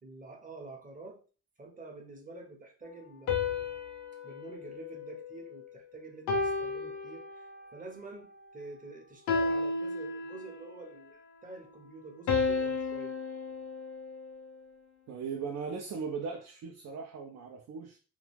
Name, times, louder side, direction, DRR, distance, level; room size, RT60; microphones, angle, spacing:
voice 1, 0.0-1.2 1.6-3.8 4.2-13.2, right 3 dB, 25° right, 0.7 m, -48 dB
sound 1, 3.3-5.7 6.3-7.7 9.3-10.7 12.3-14.6, left 4 dB, 70° left, 0.6 m, -33 dB
voice 2, 15.1-18.0, right 5 dB, 60° right, 0.4 m, -38 dB
2.3 x 2.2 x 3.1 m
cardioid pair, 90°, 30 cm